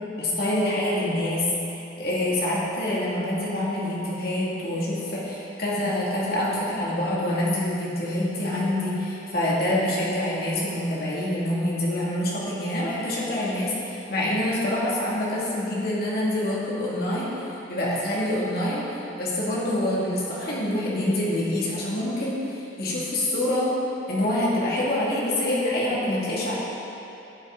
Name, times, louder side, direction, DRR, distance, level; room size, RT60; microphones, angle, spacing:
voice 1, 0.2-1.4 2.0-17.3 17.7-18.9 19.2-23.7 24.1-26.5, left 1 dB, 50° left, -7 dB, 2.5 m, -26 dB
14.5 x 7.9 x 3.9 m, 3.0 s
head